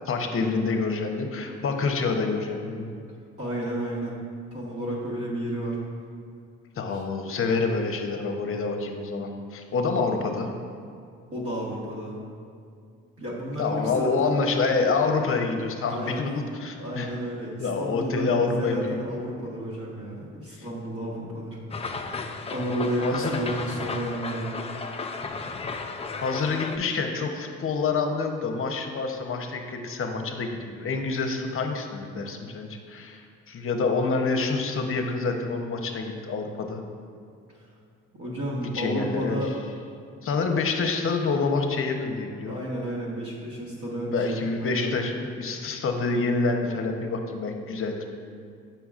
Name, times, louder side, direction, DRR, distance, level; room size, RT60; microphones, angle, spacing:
voice 1, 0.1-2.9 6.8-10.5 13.6-17.1 17.6-19.0 20.6-20.7 23.0-23.4 26.2-33.2 33.5-36.8 38.6-39.4 40.2-42.5 44.1-48.0, left 4 dB, 45° left, 4 dB, 0.7 m, -27 dB
voice 2, 3.4-4.2 4.5-5.8 6.9-7.0 11.3-12.2 13.2-14.4 15.9-16.2 16.8-21.6 22.5-24.6 38.2-39.6 42.5-44.9, right 1 dB, 50° right, -7 dB, 1.5 m, -31 dB
sound 1, 21.7-26.8, left 4 dB, 20° left, 0.4 m, -34 dB
6.9 x 5.6 x 2.4 m, 2.4 s
supercardioid pair, 75°, 30 cm